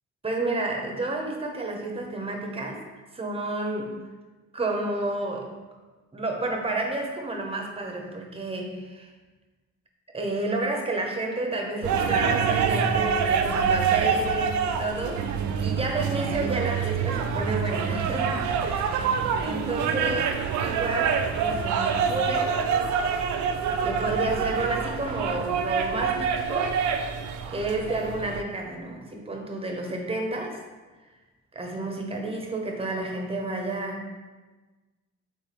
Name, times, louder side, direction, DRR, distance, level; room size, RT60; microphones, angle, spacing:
voice 1, 0.2-2.8 3.1-3.9 4.5-5.5 6.1-9.1 10.1-15.2 15.6-19.1 19.4-22.5 23.8-26.9 27.5-30.6 31.5-34.1, right 2 dB, 20° right, 1 dB, 0.8 m, -31 dB
sound 1, 11.8-28.4, right 6 dB, 70° right, 0.5 m, -26 dB
3.4 x 3.3 x 4.3 m, 1.3 s
cardioid pair, 90°, 30 cm